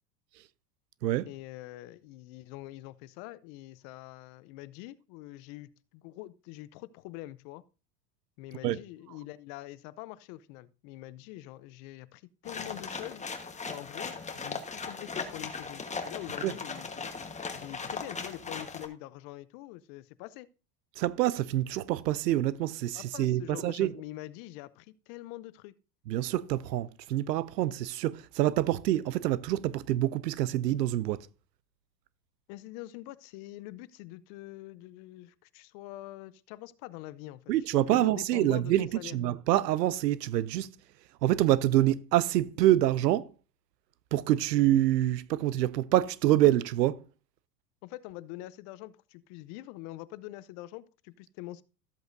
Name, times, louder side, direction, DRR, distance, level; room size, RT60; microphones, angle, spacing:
voice 1, 1.3-7.6 8.4-13.2 13.7-17.2 17.5-20.5 22.9-25.7 32.5-39.2 47.8-51.6, left 16 dB, 55° left, 0.8 m, -45 dB
sound 1, 12.4-18.9, left 4 dB, 15° left, 1.3 m, -38 dB
voice 2, 21.0-23.9 26.1-31.3 37.5-40.8 41.2-43.3 44.1-47.0, right 14 dB, 85° right, 0.7 m, -26 dB
13.5 x 7.8 x 2.6 m
hypercardioid pair, 95°, 47 cm